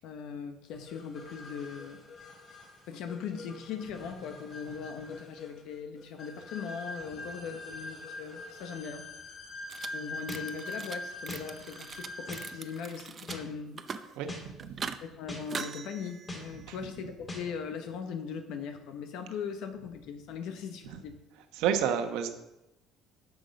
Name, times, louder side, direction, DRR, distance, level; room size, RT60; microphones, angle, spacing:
voice 1, 0.0-2.0 2.9-9.1 9.9-13.8 15.0-21.2, left 6 dB, 70° left, 6 dB, 0.9 m, -40 dB
sound 1, 0.9-12.8, left 2 dB, 35° left, 2.8 m, -44 dB
sound 2, 9.7-9.9 10.2-11.0 11.3-13.4 13.7-14.2 14.6-15.0 15.4-16.9, right 6 dB, 30° right, 0.6 m, -41 dB
sound 3, 10.3-10.4 11.3-11.4 12.3-12.4 13.3-13.4 14.3-14.4 15.3-15.4 16.3-16.4 17.3-17.4, left 1 dB, 20° left, 3.1 m, -39 dB
voice 2, 14.2-14.8 16.7-16.8 21.6-22.3, right 8 dB, 85° right, 7 dB, 1.2 m, -30 dB
9.8 x 6.4 x 5.3 m, 0.94 s
cardioid pair, 145°, 0 cm